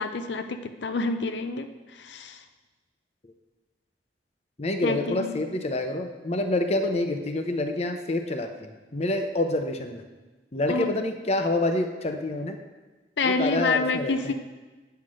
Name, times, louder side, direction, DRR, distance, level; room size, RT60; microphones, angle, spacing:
voice 1, 0.0-2.4 4.8-5.4 10.7-11.0 13.2-14.3, left 3 dB, 90° left, 8 dB, 0.6 m, -28 dB
voice 2, 4.6-10.0 10.5-12.6 13.2-14.3, left 2 dB, 35° left, 6 dB, 0.7 m, -27 dB
9.1 x 5.8 x 6.3 m, 1.2 s
head